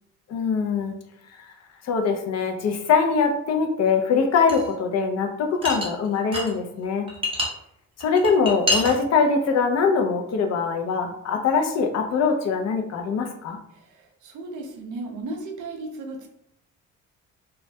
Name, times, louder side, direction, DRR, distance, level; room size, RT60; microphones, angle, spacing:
voice 1, 0.3-0.9 1.4-1.5 1.8-7.1 8.0-13.6, left 5 dB, 60° left, 4 dB, 0.5 m, -22 dB
sound 1, 4.5-4.7 5.6-6.5 6.8-7.5 8.0-9.0, left 1 dB, 20° right, 0.6 m, -26 dB
voice 2, 13.7-16.3, right 2 dB, 75° right, 3 dB, 0.6 m, -35 dB
2.2 x 2.1 x 2.6 m, 0.78 s
cardioid pair, 90°, 30 cm